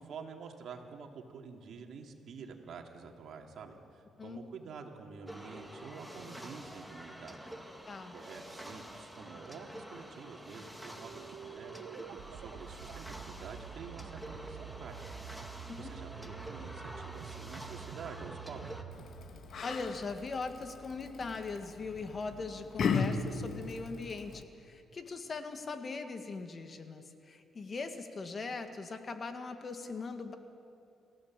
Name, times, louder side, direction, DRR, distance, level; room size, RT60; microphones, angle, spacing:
voice 1, 0.0-7.4 8.1-15.0 15.8-18.7, right 5 dB, 65° right, 3 dB, 2.5 m, -48 dB
sound 1, 5.3-18.8, equal, ahead, 2.0 m, -48 dB
sound 2, 11.0-20.3, right 9 dB, 90° right, 0.9 m, -48 dB
Yell, 18.9-24.4, left 5 dB, 60° left, 1.6 m, -37 dB
voice 2, 19.6-30.3, left 4 dB, 40° left, 7 dB, 1.8 m, -40 dB
28.0 x 15.5 x 7.5 m, 2.6 s
cardioid pair, 90°, 0 cm